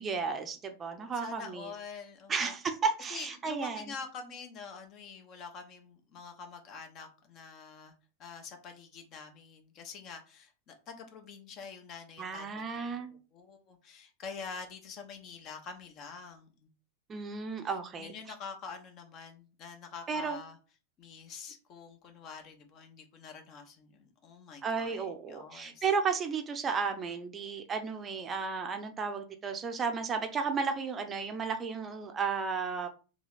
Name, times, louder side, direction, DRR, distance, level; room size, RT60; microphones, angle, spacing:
voice 1, 0.0-1.7 2.3-3.9 12.2-13.1 17.1-18.1 20.1-20.4 24.6-32.9, right 5 dB, 25° right, 6 dB, 0.6 m, -33 dB
voice 2, 1.2-2.5 3.1-7.9 8.2-16.7 17.6-20.6 21.0-25.8, left 5 dB, 35° left, 5 dB, 0.9 m, -46 dB
3.0 x 3.0 x 3.9 m, 0.34 s
figure-of-eight pair, 90°, 0 cm